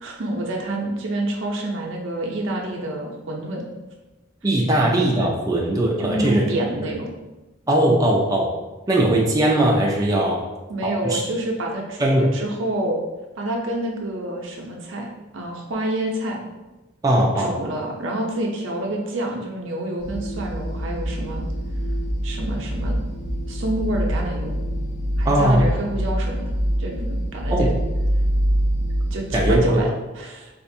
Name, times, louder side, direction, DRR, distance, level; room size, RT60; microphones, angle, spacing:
voice 1, 0.0-3.6 6.0-7.1 10.7-13.0 13.4-15.1 15.3-16.4 17.4-21.5 22.2-23.0 23.5-24.6 25.2-26.4 26.8-27.7 29.1-29.9 30.2-30.5, right 1 dB, 70° right, 0 dB, 0.6 m, -28 dB
voice 2, 4.4-6.4 7.7-8.5 8.9-10.4 10.8-11.2 12.0-12.3 17.0-17.6 25.3-25.6 27.5-27.7 29.3-29.6, right 1 dB, 20° right, -2 dB, 0.4 m, -19 dB
sound 1, 20.0-29.6, equal, 85° left, 1.2 m, -25 dB
4.4 x 2.5 x 2.6 m, 1.1 s
head